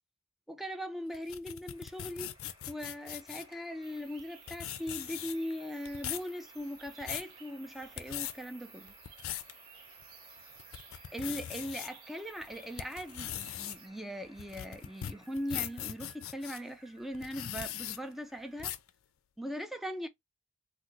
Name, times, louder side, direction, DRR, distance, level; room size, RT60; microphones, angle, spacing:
voice 1, 0.5-2.4 2.7-8.9 11.1-18.8 19.4-20.1, equal, ahead, 0.4 m, -40 dB
sound 1, 1.1-3.5 4.2-4.3 4.5-5.5 5.8-6.3 6.8-7.3 7.8-8.3 8.9-9.5 10.0-10.1 10.6-11.9 12.4-16.6 17.1-18.0 18.6-18.9, left 11 dB, 75° left, 0.4 m, -40 dB
sound 2, 1.7-18.6, equal, 25° right, 1.5 m, -61 dB
sound 3, 3.8-13.9, right 7 dB, 85° right, 0.9 m, -55 dB
3.7 x 2.2 x 3.0 m
head